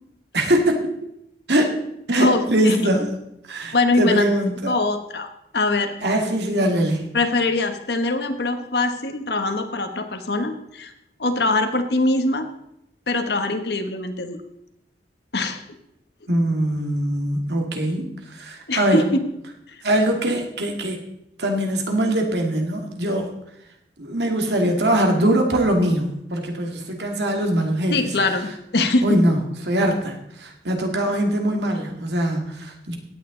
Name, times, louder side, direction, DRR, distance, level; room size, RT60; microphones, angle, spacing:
voice 1, 0.3-0.9 1.5-1.8 2.1-3.1 3.5-4.7 6.0-7.1 16.3-19.0 19.8-21.0 21.4-23.3 24.0-28.1 29.0-29.4 29.6-33.0, right 1 dB, 75° right, 3 dB, 2.3 m, -22 dB
voice 2, 2.2-2.9 3.7-4.3 4.7-5.3 5.5-5.9 7.1-10.9 11.2-12.5 13.1-14.4 15.3-15.6 18.7-19.0 27.9-29.2, left 2 dB, 70° left, 7 dB, 1.4 m, -22 dB
16.5 x 9.4 x 3.9 m, 0.81 s
head